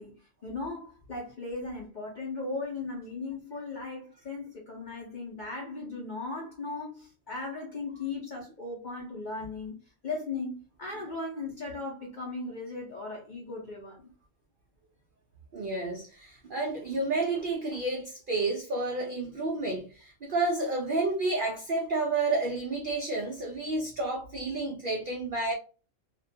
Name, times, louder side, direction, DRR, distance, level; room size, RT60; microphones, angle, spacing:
voice 1, 0.0-14.1, left 3 dB, 55° left, 0.5 m, -37 dB
voice 2, 15.5-25.5, right 2 dB, 90° right, 0.4 m, -30 dB
2.4 x 2.1 x 2.6 m
omnidirectional pair, 1.5 m